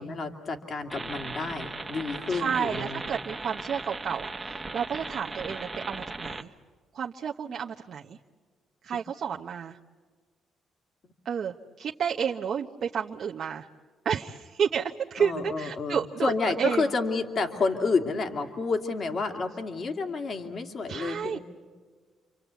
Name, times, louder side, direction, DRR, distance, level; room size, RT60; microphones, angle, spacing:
voice 1, 0.0-3.0 15.2-21.4, left 4 dB, 50° left, 4 dB, 2.4 m, -30 dB
sound 1, 0.9-6.4, right 2 dB, 15° right, 1.1 m, -37 dB
voice 2, 2.3-6.5 6.9-8.2 8.8-9.8 11.2-13.7 14.0-16.8 20.9-21.4, right 7 dB, 60° right, 1 dB, 0.9 m, -31 dB
28.5 x 25.0 x 8.2 m, 1.5 s
cardioid pair, 90°, 0 cm